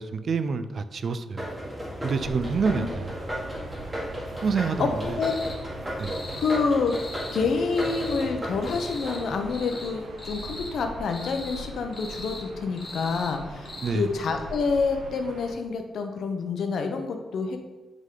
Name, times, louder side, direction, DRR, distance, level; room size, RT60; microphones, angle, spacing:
voice 1, 0.0-1.5 2.0-3.1 4.4-5.2 6.0-6.1 13.8-14.1, right 5 dB, 50° right, 11 dB, 0.4 m, -27 dB
sound 1, 1.4-10.5, equal, 15° right, 1.7 m, -35 dB
Gull seagull / Ocean, 2.1-15.5, right 2 dB, 90° right, 1.0 m, -42 dB
voice 2, 4.8-5.3 6.4-6.9 7.3-17.6, left 4 dB, 70° left, 5 dB, 0.8 m, -27 dB
sound 2, 5.2-5.6 6.0-6.6 6.9-7.4 7.7-8.3 8.6-9.2 9.5-9.9 10.2-10.7 11.1-11.6 11.9-12.4 12.8-13.3 13.6-13.9, left 2 dB, 30° left, 1.4 m, -40 dB
8.0 x 3.7 x 3.8 m, 1.1 s
cardioid pair, 120°, 0 cm